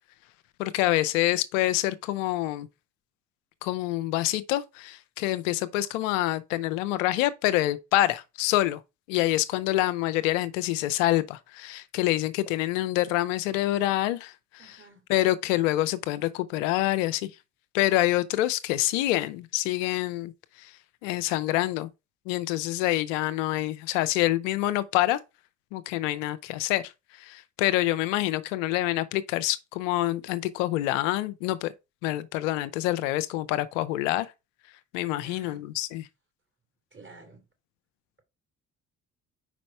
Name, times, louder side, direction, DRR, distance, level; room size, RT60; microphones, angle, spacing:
voice 1, 0.6-2.7 3.6-8.8 9.1-14.6 15.1-17.3 17.7-20.3 20.6-20.7 21.0-21.9 22.3-25.2 25.7-31.7 32.0-34.3 34.9-36.0, left 15 dB, 80° left, 0.6 m, -26 dB
voice 2, 14.6-15.0 35.2-35.6 36.9-37.5, right 2 dB, 30° right, 2.9 m, -50 dB
5.1 x 4.9 x 4.4 m
hypercardioid pair, 45°, 38 cm